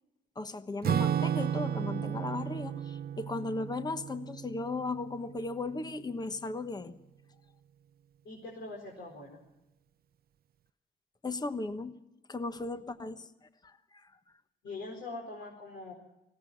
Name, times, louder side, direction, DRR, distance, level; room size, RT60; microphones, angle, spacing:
voice 1, 0.4-6.9 11.2-12.0 12.3-13.3 13.6-14.1, left 3 dB, 20° left, 10 dB, 1.2 m, -36 dB
Acoustic guitar / Strum, 0.8-5.6, right 9 dB, 50° right, 0.6 m, -33 dB
voice 2, 8.2-9.4 14.6-15.9, left 2 dB, 65° left, -1 dB, 4.6 m, -43 dB
19.5 x 16.5 x 8.7 m, 0.93 s
cardioid pair, 90°, 20 cm